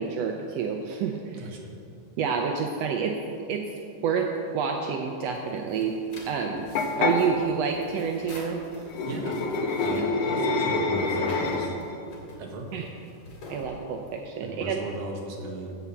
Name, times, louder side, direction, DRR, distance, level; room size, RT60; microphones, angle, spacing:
voice 1, 0.0-1.5 2.2-3.2 3.5-3.7 4.0-4.3 4.5-6.0 6.3-6.7 7.0-8.6 9.9-10.1 12.7-12.8 13.5-14.8, right 6 dB, 80° right, 2 dB, 1.4 m, -28 dB
voice 2, 1.4-1.7 8.8-9.4 9.8-11.7 12.4-12.7 14.4-15.8, right 1 dB, 55° right, -1 dB, 2.2 m, -37 dB
sound 1, 5.3-14.4, left 1 dB, 45° left, 3.1 m, -47 dB
sound 2, 6.8-7.2 8.9-11.9, left 3 dB, 65° left, 1.7 m, -26 dB
15.5 x 5.7 x 7.0 m, 2.6 s
omnidirectional pair, 3.8 m